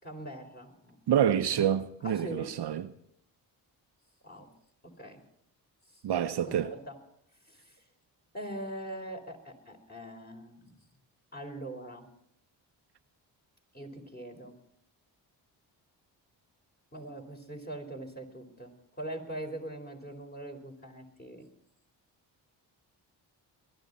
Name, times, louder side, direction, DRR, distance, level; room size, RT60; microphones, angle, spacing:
voice 1, 0.0-1.0 1.5-1.7 2.0-2.6 4.2-4.5 4.8-5.2 5.9-6.0 6.5-7.0 7.5-7.8 8.3-10.7 11.3-12.1 13.7-14.6 16.9-21.5, right 1 dB, 20° left, 4.5 m, -42 dB
voice 2, 1.1-2.8 6.0-6.7, right 9 dB, 60° right, 0.8 m, -27 dB
21.0 x 12.5 x 4.2 m
supercardioid pair, 55°, 45 cm